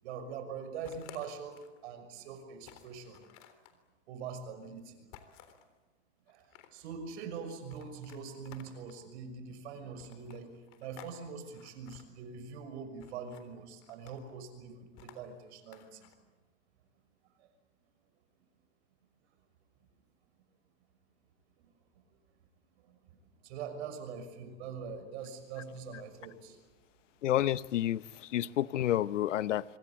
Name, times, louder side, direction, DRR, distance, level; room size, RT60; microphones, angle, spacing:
voice 1, 0.0-3.2 4.1-5.1 6.3-10.5 10.8-16.1 17.4-17.5 21.6-21.7 22.8-23.2 23.4-26.6, right 6 dB, 65° right, 6.3 m, -43 dB
sound 1, 0.8-1.8 2.2-2.3 2.6-3.8 5.1-5.7 6.3-6.9 7.7-9.0 10.0-11.2 11.4-12.0 13.0-13.5 13.8-14.3 15.0-16.2, left 10 dB, 50° left, 3.7 m, -55 dB
voice 2, 27.2-29.6, left 12 dB, 85° left, 0.9 m, -30 dB
25.0 x 24.0 x 8.7 m
hypercardioid pair, 115°, 36 cm